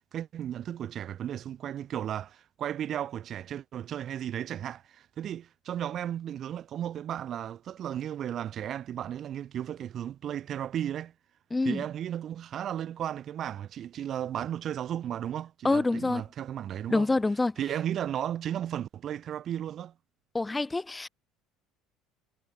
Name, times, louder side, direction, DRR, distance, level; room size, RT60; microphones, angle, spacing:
voice 1, 0.0-11.1 11.6-17.1 17.6-19.9, right 10 dB, 45° right, 0.9 m, -34 dB
voice 2, 11.5-11.8 15.6-16.2 16.9-17.6 20.3-21.1, left 2 dB, 10° left, 0.6 m, -26 dB
cardioid pair, 125°, 0 cm